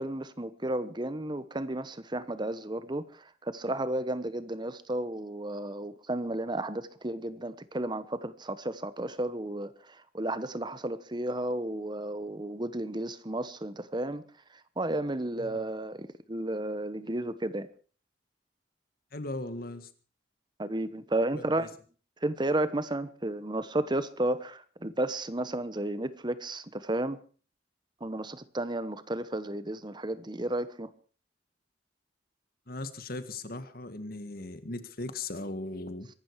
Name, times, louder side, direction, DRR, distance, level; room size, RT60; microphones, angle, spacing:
voice 1, 0.0-3.0 3.4-14.2 14.8-17.7 20.6-21.7 22.2-27.2 28.0-30.9, right 1 dB, 25° right, 14 dB, 1.1 m, -33 dB
voice 2, 19.1-19.9 21.3-21.7 32.7-36.1, left 2 dB, 55° left, 11 dB, 1.8 m, -38 dB
23.5 x 12.5 x 4.7 m, 0.40 s
head